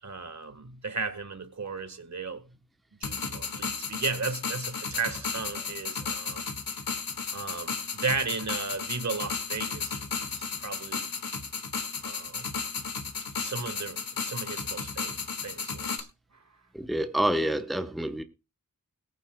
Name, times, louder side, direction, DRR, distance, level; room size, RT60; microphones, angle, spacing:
voice 1, 0.0-2.4 3.0-6.4 7.3-10.0 10.2-11.1 12.0-12.5 13.4-16.1, right 4 dB, 55° right, 1.5 m, -35 dB
sound 1, 3.0-16.0, left 5 dB, 85° left, 1.7 m, -34 dB
voice 2, 16.7-18.2, right 1 dB, ahead, 0.9 m, -27 dB
21.5 x 9.4 x 2.2 m
wide cardioid pair, 100°, 34 cm